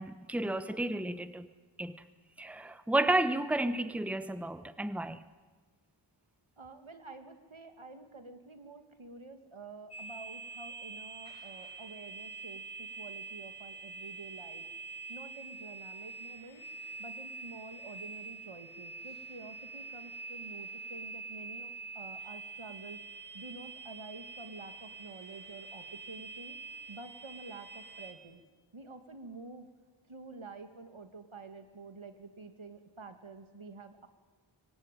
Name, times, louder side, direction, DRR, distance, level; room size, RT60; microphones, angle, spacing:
voice 1, 0.0-1.5 1.8-2.0 2.4-5.2, right 1 dB, 5° right, 1.1 m, -32 dB
voice 2, 6.6-14.6 15.1-16.6 17.0-23.0 23.3-26.6 26.9-28.4 28.7-29.7 30.1-34.1, right 3 dB, 75° right, 2.3 m, -49 dB
sound 1, 9.9-28.1, right 3 dB, 55° left, 4.7 m, -45 dB
24.5 x 24.0 x 9.2 m
wide cardioid pair, 45°, 48 cm